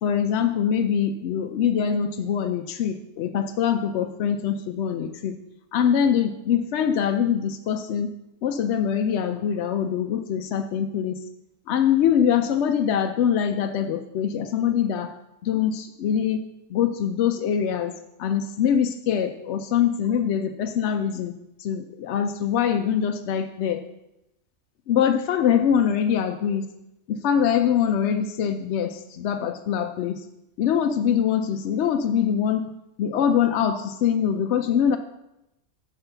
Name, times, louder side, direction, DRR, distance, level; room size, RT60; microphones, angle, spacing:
voice 1, 0.0-5.4 5.7-8.1 8.4-11.2 11.7-15.1 15.4-16.4 16.7-17.9 18.2-21.3 21.6-23.8 24.9-26.7 27.1-30.2 30.6-32.6 33.0-35.0, left 8 dB, 65° left, 6 dB, 0.7 m, -23 dB
8.0 x 4.8 x 6.8 m, 0.88 s
omnidirectional pair, 1.4 m